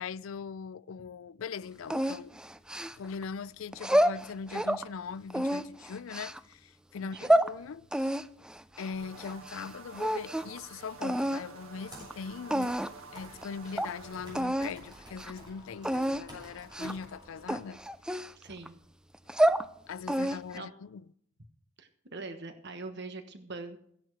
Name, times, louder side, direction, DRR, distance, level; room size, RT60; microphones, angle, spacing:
voice 1, 0.0-2.3 2.9-8.2 8.8-12.7 13.1-17.8 19.9-21.0, left 6 dB, 70° left, 0.4 m, -41 dB
sound 1, 1.9-3.2 3.7-4.9 5.3-6.4 7.0-7.5 7.9-9.7 9.9-10.6 11.0-11.4 12.1-12.2 12.5-13.0 13.4-13.5 13.8-13.9 14.3-14.7 15.1-15.3 15.8-16.2 16.7-17.1 17.5-18.7 19.1-19.7 20.1-20.6, right 1 dB, 5° right, 0.4 m, -28 dB
voice 2, 7.0-7.4 18.3-18.8 20.3-20.7 21.8-23.8, right 3 dB, 55° right, 1.3 m, -43 dB
sound 2, 8.9-14.5, right 4 dB, 85° right, 1.7 m, -50 dB
Computer keyboard, 11.8-17.8, equal, 20° right, 6.7 m, -52 dB
15.0 x 11.0 x 4.7 m
head